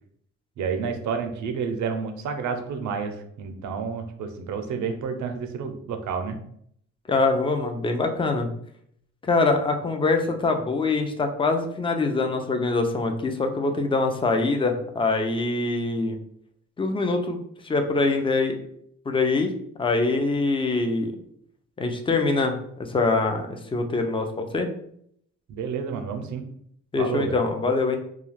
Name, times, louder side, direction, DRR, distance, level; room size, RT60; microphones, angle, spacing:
voice 1, 0.6-6.4 25.5-26.5 27.0-27.4, right 6 dB, 70° right, 6 dB, 0.6 m, -30 dB
voice 2, 7.1-8.5 9.2-16.2 16.8-17.4 17.6-18.5 19.1-19.5 19.8-21.1 21.8-22.6 22.9-24.7 26.9-28.0, left 3 dB, 15° left, 5 dB, 0.4 m, -24 dB
2.3 x 2.3 x 3.2 m, 0.67 s
cardioid pair, 90°, 30 cm